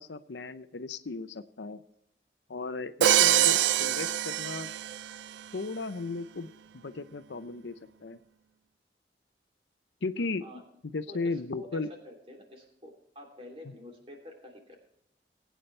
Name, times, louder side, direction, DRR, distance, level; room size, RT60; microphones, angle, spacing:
voice 1, 0.0-1.8 2.5-4.7 5.5-6.5 6.8-7.7 8.0-8.2 10.0-10.4 10.8-11.9, left 3 dB, 85° left, 11 dB, 0.7 m, -35 dB
Crash cymbal, 3.0-5.2, right 12 dB, 85° right, 0.4 m, -24 dB
voice 2, 11.1-14.8, left 1 dB, 30° right, 1 dB, 3.0 m, -48 dB
20.5 x 9.2 x 3.3 m, 0.75 s
head